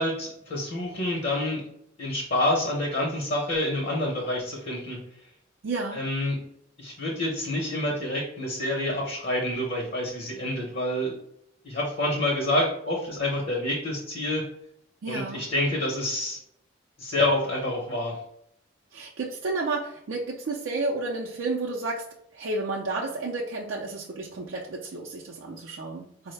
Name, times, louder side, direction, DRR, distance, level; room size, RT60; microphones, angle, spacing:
voice 1, 0.0-1.6 2.0-5.0 5.9-6.4 6.8-11.1 11.6-14.4 15.1-16.4 17.0-18.1, left 1 dB, 50° left, -2 dB, 0.8 m, -27 dB
voice 2, 5.6-6.0 15.0-15.4 18.9-22.0 22.3-26.3, right 3 dB, 65° right, -3 dB, 0.4 m, -31 dB
4.5 x 2.0 x 3.2 m, 0.72 s
head